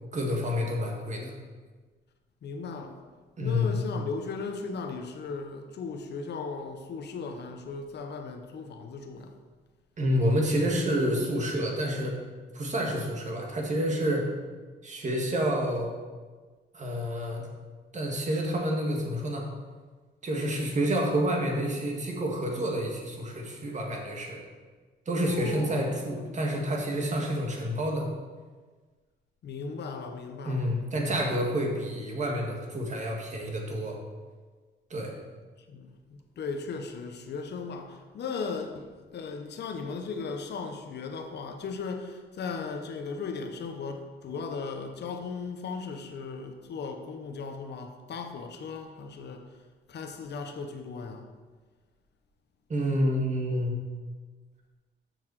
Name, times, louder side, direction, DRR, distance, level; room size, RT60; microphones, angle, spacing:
voice 1, 0.1-1.3 3.4-3.8 10.0-12.2 12.5-14.3 14.8-15.9 16.7-17.5 17.9-19.5 20.2-24.4 25.1-28.1 30.5-34.0 34.9-35.1 52.7-53.8, equal, 35° right, 1.8 m, -28 dB
voice 2, 2.4-3.0 3.4-9.4 25.2-25.9 26.2-26.3 29.4-30.7 31.1-31.3 35.6-49.6 49.9-51.3, left 4 dB, 60° left, 0.9 m, -37 dB
7.0 x 6.0 x 4.8 m
cardioid pair, 90°, 20 cm